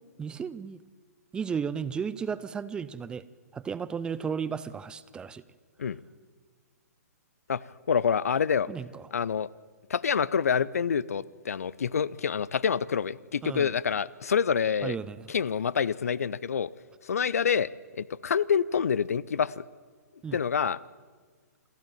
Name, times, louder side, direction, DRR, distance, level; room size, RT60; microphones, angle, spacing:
voice 1, 0.2-0.8 1.3-3.2 3.5-5.4 8.7-9.0 13.4-13.7 14.8-15.3 20.2-20.4, right 6 dB, 10° right, 17 dB, 0.5 m, -34 dB
voice 2, 7.5-8.7 9.1-9.5 9.9-15.0 15.3-16.7 17.0-19.7 20.3-20.8, left 7 dB, 60° left, 22 dB, 0.6 m, -27 dB
28.0 x 11.5 x 9.1 m, 1.5 s
figure-of-eight pair, 120°, 9 cm